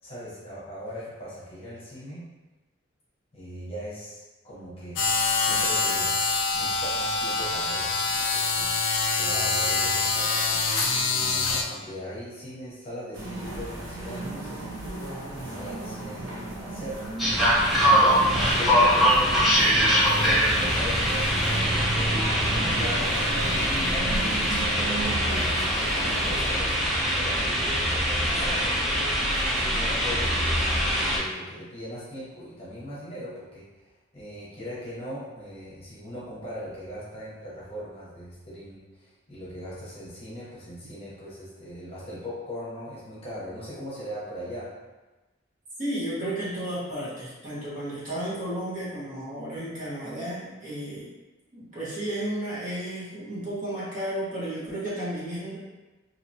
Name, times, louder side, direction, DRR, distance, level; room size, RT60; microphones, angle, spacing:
voice 1, 0.0-2.3 3.3-5.0 5.4-6.2 6.5-22.2 22.7-28.9 29.3-44.7, equal, 30° left, -9 dB, 1.0 m, -40 dB
sound 1, 5.0-11.6, left 4 dB, 70° left, 0.5 m, -25 dB
sound 2, 13.1-26.5, right 2 dB, 80° right, 0.8 m, -35 dB
sound 3, 17.2-31.2, equal, ahead, 0.8 m, -23 dB
voice 2, 45.8-51.1 51.5-55.6, right 1 dB, 40° right, -11 dB, 1.3 m, -33 dB
2.9 x 2.8 x 2.7 m, 1.1 s
head